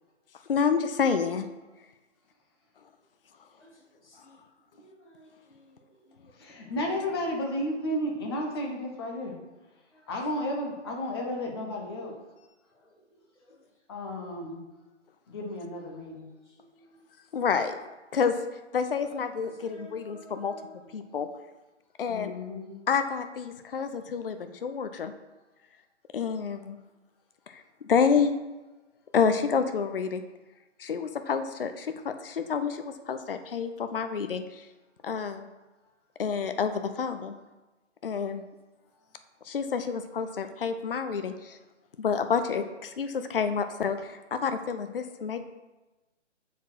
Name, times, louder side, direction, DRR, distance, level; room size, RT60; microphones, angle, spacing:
voice 1, 0.5-1.5 17.3-17.7 18.1-18.4 18.7-20.5 20.9-21.3 22.0-22.3 22.9-25.1 26.1-26.8 27.5-27.6 27.9-28.3 29.1-30.2 30.8-34.7 35.0-35.5 36.2-37.3 38.0-38.4 39.4-41.6 42.0-45.4, left 6 dB, 50° left, 9 dB, 0.6 m, -28 dB
voice 2, 3.6-4.4 4.8-7.1 8.3-8.5 9.9-10.1 12.7-13.6 16.4-17.0 19.0-19.1 19.4-20.8, right 1 dB, 65° left, 0 dB, 2.1 m, -55 dB
voice 3, 6.4-9.4 10.1-12.2 13.9-14.6 15.3-16.3 22.1-22.8, left 1 dB, 20° left, 0 dB, 0.8 m, -33 dB
7.1 x 4.1 x 6.2 m, 1.1 s
figure-of-eight pair, 140°, 37 cm